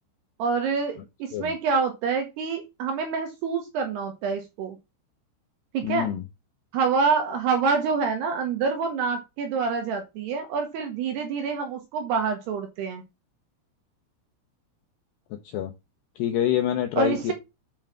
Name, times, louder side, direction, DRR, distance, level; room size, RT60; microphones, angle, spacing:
voice 1, 0.4-4.8 5.7-6.1 6.7-13.0 17.0-17.3, right 5 dB, 70° right, 5 dB, 2.6 m, -26 dB
voice 2, 5.8-6.2 15.5-15.7 16.2-17.3, left 11 dB, 80° left, 5 dB, 2.4 m, -26 dB
7.9 x 5.7 x 5.8 m, 0.25 s
omnidirectional pair, 5.9 m